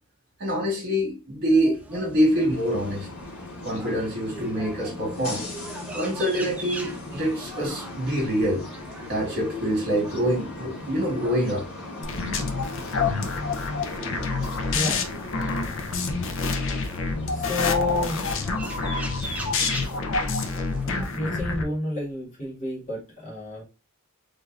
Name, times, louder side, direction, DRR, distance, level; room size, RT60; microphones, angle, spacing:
voice 1, 0.4-3.1 3.6-5.4 5.9-8.6 9.1-11.7, equal, 45° right, 1.7 m, -25 dB
sound 1, 1.7-21.1, right 1 dB, 5° right, 0.5 m, -42 dB
sound 2, 2.1-20.2, left 2 dB, 80° left, 1.8 m, -39 dB
sound 3, 12.0-21.6, left 4 dB, 60° left, 0.6 m, -27 dB
voice 2, 14.7-15.1 17.3-18.2 21.1-23.6, left 2 dB, 35° left, 1.7 m, -30 dB
3.5 x 3.3 x 2.4 m
head